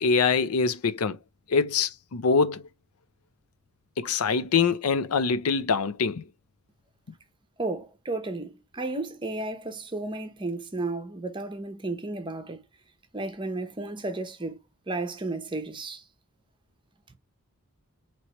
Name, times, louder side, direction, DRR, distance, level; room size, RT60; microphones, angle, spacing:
voice 1, 0.0-1.2 1.5-2.6 4.0-6.2, left 5 dB, 90° left, 0.5 m, -24 dB
voice 2, 7.6-12.6 13.1-14.6 14.9-16.0, right 2 dB, 20° right, 0.7 m, -33 dB
4.4 x 3.0 x 3.0 m
head